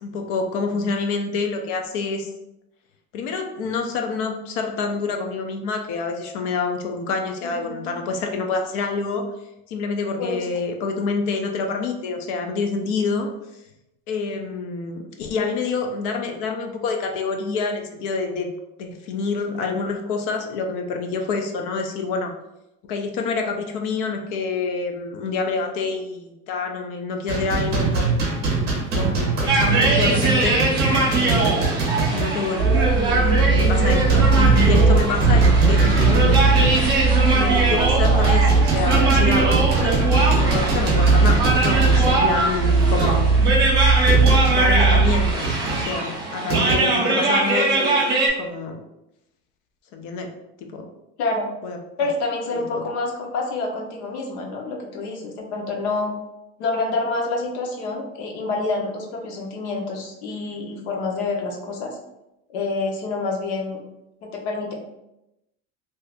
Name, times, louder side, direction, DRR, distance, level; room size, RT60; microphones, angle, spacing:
voice 1, 0.0-2.3 3.1-9.2 9.7-13.3 14.1-18.5 18.8-22.3 22.9-28.1 28.9-30.6 31.1-31.8 32.0-32.7 33.0-36.4 37.3-40.0 40.3-43.4 44.4-48.0 48.4-48.8 49.9-50.3 50.6-50.9 51.6-51.8 52.5-52.8, left 4 dB, 55° left, 4 dB, 0.4 m, -27 dB
voice 2, 7.4-7.9 10.2-10.5 46.8-47.2 51.2-51.5 52.0-56.1 56.6-62.0 62.5-63.8 64.2-64.7, left 3 dB, 80° left, 0 dB, 0.9 m, -27 dB
sound 1, 27.3-32.5 32.8-32.9 33.4-37.4 37.8-44.7 45.4-46.8, right 3 dB, 30° right, 0.8 m, -24 dB
sound 2, 29.5-48.3, right 2 dB, 15° right, 0.4 m, -22 dB
sound 3, 32.6-45.3, right 4 dB, 80° right, 0.6 m, -19 dB
2.7 x 2.4 x 3.4 m, 0.89 s
cardioid pair, 180°, 34 cm